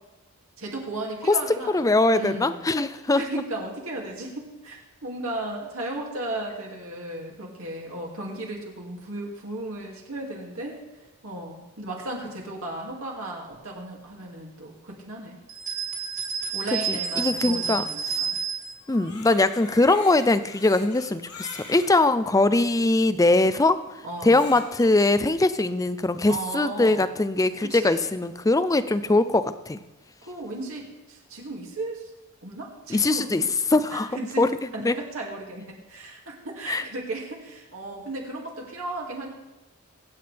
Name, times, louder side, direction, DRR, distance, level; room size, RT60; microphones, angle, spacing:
voice 1, 0.6-1.8 2.1-2.6 3.2-15.4 16.5-18.4 24.0-24.5 26.3-27.1 27.6-28.1 30.2-32.1 32.4-33.4 33.9-34.5 34.7-39.3, right 2 dB, 65° right, -1 dB, 2.4 m, -35 dB
voice 2, 1.3-3.2 16.7-18.2 18.9-29.8 32.9-33.4 33.7-34.5 34.8-35.0 36.7-36.8, left 2 dB, 15° left, 13 dB, 0.4 m, -22 dB
sound 1, 15.5-18.8, right 6 dB, 35° right, 2.7 m, -30 dB
Crying sobbing, 18.8-21.9 22.7-22.8 24.1-24.9, left 4 dB, 80° left, 4.1 m, -43 dB
23.0 x 8.7 x 3.4 m, 1.1 s
head